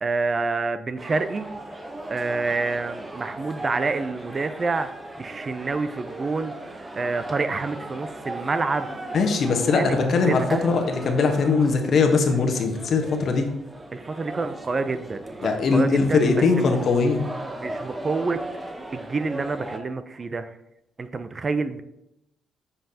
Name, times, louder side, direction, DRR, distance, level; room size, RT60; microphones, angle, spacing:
voice 1, 0.0-1.5 2.1-4.9 5.2-6.5 7.0-8.9 9.7-10.0 10.3-10.7 13.9-16.7 17.6-18.4 18.9-20.6 21.0-21.8, right 3 dB, 35° right, 12 dB, 0.4 m, -27 dB
sound 1, 1.0-19.8, right 1 dB, 20° right, 0.8 m, -37 dB
voice 2, 9.1-13.4 15.4-17.3, left 4 dB, 55° left, 5 dB, 1.0 m, -21 dB
7.4 x 5.5 x 2.8 m, 0.83 s
cardioid pair, 90°, 0 cm